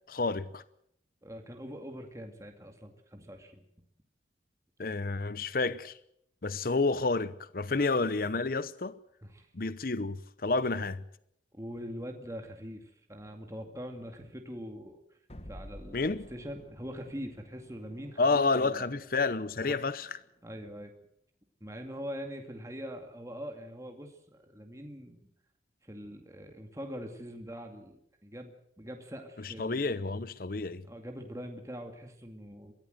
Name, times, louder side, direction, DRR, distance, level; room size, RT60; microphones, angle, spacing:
voice 1, 0.1-0.6 4.8-5.9 6.4-9.0 9.5-11.0 15.9-16.2 18.2-20.2 29.4-30.8, left 3 dB, 50° left, 0.8 m, -30 dB
voice 2, 1.2-3.6 7.7-7.9 9.2-9.5 11.5-15.0 15.5-18.9 19.6-19.8 20.4-20.9 21.6-25.2 25.8-29.9 30.8-32.7, equal, 15° right, 2.2 m, -43 dB
sound 1, 15.3-20.4, equal, 35° left, 1.6 m, -52 dB
23.0 x 16.0 x 7.9 m
head